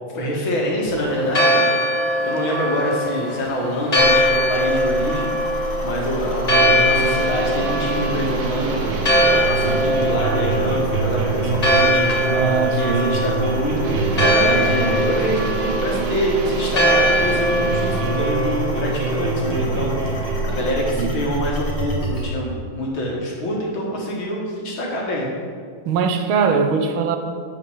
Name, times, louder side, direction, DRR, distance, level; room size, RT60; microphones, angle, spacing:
voice 1, 0.1-1.6 2.2-5.3 5.8-8.8 9.3-12.1 12.6-25.3, equal, 80° left, -3 dB, 2.5 m, -25 dB
Church bell, 1.0-20.4, left 1 dB, 60° left, 0.4 m, -22 dB
sound 1, 3.9-22.2, right 2 dB, 25° left, 2.6 m, -30 dB
sound 2, 6.5-20.9, right 4 dB, 65° right, 1.2 m, -25 dB
voice 2, 12.3-13.2 20.9-21.2 25.9-27.2, right 6 dB, 85° right, 7 dB, 1.6 m, -21 dB
8.5 x 5.4 x 5.6 m, 2.1 s
omnidirectional pair, 2.2 m